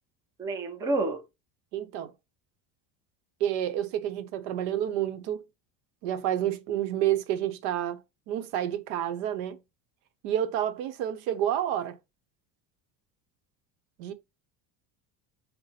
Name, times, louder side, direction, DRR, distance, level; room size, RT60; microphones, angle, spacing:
voice 1, 0.4-1.2, right 2 dB, 10° right, 0.4 m, -29 dB
voice 2, 1.7-2.1 3.4-5.4 6.0-8.0 8.3-9.6 10.2-12.0 14.0-14.1, right 11 dB, 85° right, 0.8 m, -29 dB
5.6 x 2.1 x 4.0 m
cardioid pair, 175°, 40 cm